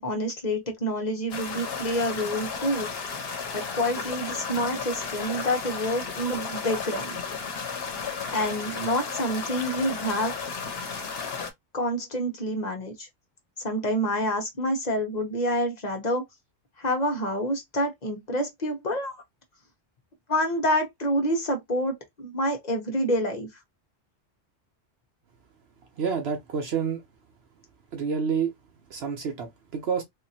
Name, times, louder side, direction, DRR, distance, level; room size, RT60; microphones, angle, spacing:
voice 1, 0.0-2.9 3.1-3.3 3.5-7.1 8.3-10.3 11.7-13.1 13.6-16.3 16.8-19.2 20.3-23.5, equal, 40° left, 1.1 m, -27 dB
sound 1, 1.3-11.5, left 5 dB, 65° left, 1.1 m, -33 dB
voice 2, 26.0-27.0 27.9-28.5 28.9-30.0, right 6 dB, 70° right, 1.0 m, -28 dB
3.7 x 2.8 x 2.8 m
omnidirectional pair, 1.1 m